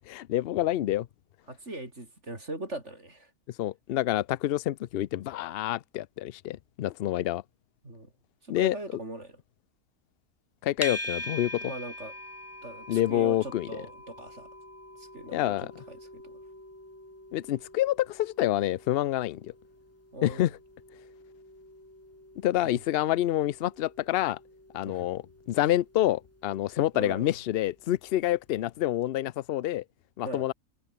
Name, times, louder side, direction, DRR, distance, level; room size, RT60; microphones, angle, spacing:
voice 1, 0.1-1.1 3.6-7.4 8.5-8.8 10.6-11.7 12.9-13.7 15.3-15.7 17.3-19.5 20.2-20.5 22.4-24.4 24.7-25.2 25.5-29.8 30.2-30.5, left 13 dB, 65° left, 0.6 m, -27 dB
voice 2, 1.5-3.3 7.8-8.1 8.4-9.4 11.6-12.1 12.6-14.5 15.0-16.3 20.1-20.5 24.8-25.1 26.9-27.4 30.2-30.5, right 2 dB, 50° right, 5.7 m, -40 dB
sound 1, 10.8-28.0, left 1 dB, 10° left, 2.4 m, -44 dB
omnidirectional pair, 1.5 m